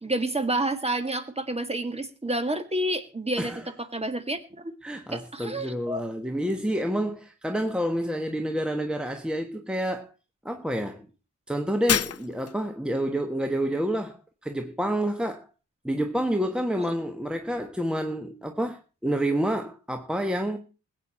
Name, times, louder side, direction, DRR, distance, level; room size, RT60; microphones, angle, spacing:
voice 1, 0.0-3.5 3.9-4.7 5.1-6.0, right 1 dB, 20° right, 1.9 m, -29 dB
voice 2, 3.4-3.7 4.8-10.1 10.4-11.1 11.5-14.2 14.4-15.5 15.8-20.6, equal, 5° right, 1.2 m, -28 dB
Shatter, 11.9-12.7, left 8 dB, 55° left, 0.6 m, -27 dB
20.5 x 9.0 x 4.3 m
wide cardioid pair, 105°, 30 cm